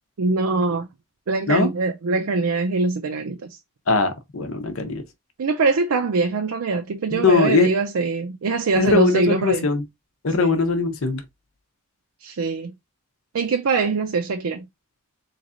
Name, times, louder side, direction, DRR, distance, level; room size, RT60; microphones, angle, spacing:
voice 1, 0.2-0.9 1.3-3.4 5.4-9.7 10.4-10.6 12.2-12.7 13.3-14.7, right 3 dB, 90° right, 0.5 m, -23 dB
voice 2, 3.9-5.0 7.1-7.7 8.8-9.8 10.2-11.2, left 4 dB, 80° left, 0.8 m, -20 dB
4.0 x 3.1 x 2.5 m
head